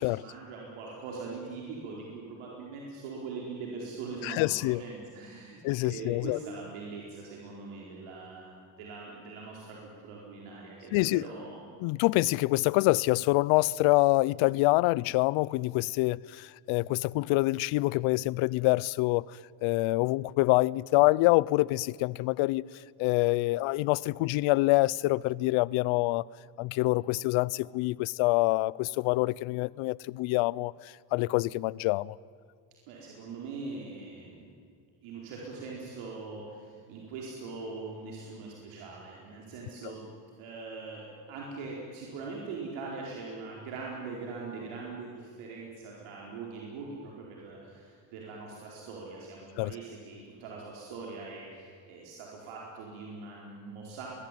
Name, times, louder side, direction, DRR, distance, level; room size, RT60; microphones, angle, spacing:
voice 1, 0.0-11.6 32.9-34.5 35.0-40.0 40.4-54.1, right 4 dB, 80° right, 4.6 m, -42 dB
voice 2, 4.2-4.8 5.6-6.4 10.9-11.2 11.8-19.2 19.6-22.6 23.0-26.2 26.6-30.7 31.1-32.2 49.6-49.7, left 21 dB, 75° left, 0.6 m, -26 dB
22.5 x 21.5 x 9.3 m
cardioid pair, 140°, 48 cm